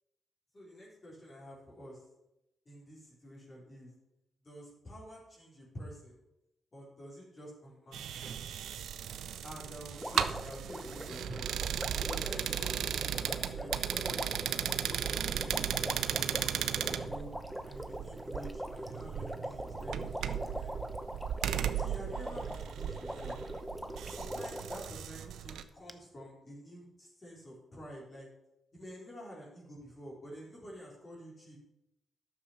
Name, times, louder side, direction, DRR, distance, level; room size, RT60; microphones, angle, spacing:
voice 1, 0.5-2.0 2.7-3.9 4.4-6.2 6.7-8.4 9.4-11.5 12.0-15.6 16.0-17.3 17.6-20.7 21.7-23.4 24.0-28.3 28.7-31.6, equal, 35° left, -4 dB, 4.1 m, -49 dB
sound 1, 7.9-25.6, right 9 dB, 80° right, 0.6 m, -36 dB
Water, 10.0-25.0 25.9-26.0, equal, ahead, 0.8 m, -42 dB
9.8 x 6.9 x 5.8 m, 0.91 s
cardioid pair, 75°, 0 cm